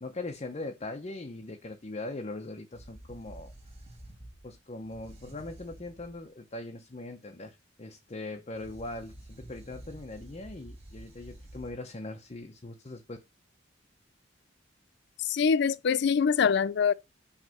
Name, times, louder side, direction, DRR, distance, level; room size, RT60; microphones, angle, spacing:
voice 1, 0.0-3.5 4.4-13.2, left 2 dB, 35° left, 0.7 m, -40 dB
sound 1, 2.7-6.2 8.5-11.7, right 1 dB, 35° right, 2.6 m, -49 dB
voice 2, 15.2-16.9, left 6 dB, 60° left, 0.4 m, -24 dB
6.2 x 3.3 x 5.6 m
head